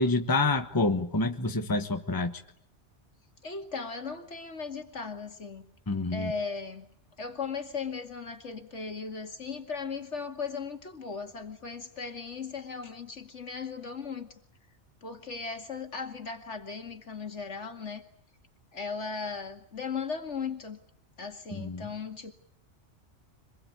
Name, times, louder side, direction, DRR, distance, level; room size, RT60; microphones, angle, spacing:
voice 1, 0.0-2.4 5.9-6.3 21.5-21.9, left 2 dB, 20° left, 7 dB, 1.2 m, -27 dB
voice 2, 3.4-5.6 6.1-6.8 7.2-14.3 15.0-18.0 18.7-20.8 21.2-22.3, left 5 dB, 70° left, 5 dB, 2.6 m, -37 dB
25.5 x 20.5 x 9.6 m, 0.69 s
omnidirectional pair, 1.2 m